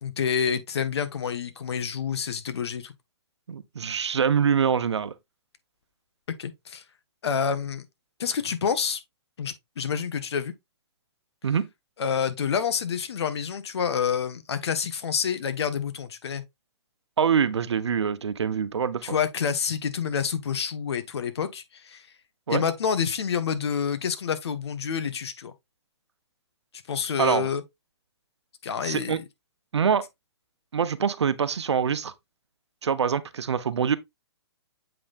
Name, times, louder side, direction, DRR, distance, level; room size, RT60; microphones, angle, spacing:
voice 1, 0.0-2.9 6.4-6.8 7.2-7.8 8.2-9.0 9.4-10.5 12.0-16.4 19.0-22.0 22.5-25.5 26.9-27.6 28.6-29.2, left 7 dB, 70° left, 1.3 m, -28 dB
voice 2, 3.5-5.1 11.4-11.7 17.2-19.2 22.5-22.6 27.2-27.5 28.8-29.2 29.7-30.0 30.7-32.1 32.8-34.0, right 7 dB, 80° right, 0.9 m, -24 dB
7.6 x 5.5 x 2.5 m
hypercardioid pair, 140°, 14 cm